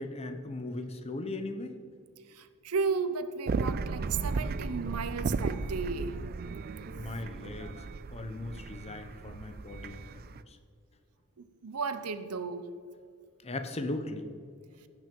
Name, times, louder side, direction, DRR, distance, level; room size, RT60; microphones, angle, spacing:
voice 1, 0.0-1.8 6.9-7.8 8.1-10.6 13.4-14.3, left 2 dB, 30° left, 7 dB, 0.8 m, -38 dB
voice 2, 2.3-6.2 11.4-12.7, right 5 dB, 85° right, 11 dB, 0.7 m, -34 dB
sound 1, 3.5-10.4, right 4 dB, 45° right, 0.4 m, -35 dB
16.0 x 6.2 x 5.3 m, 2.3 s
head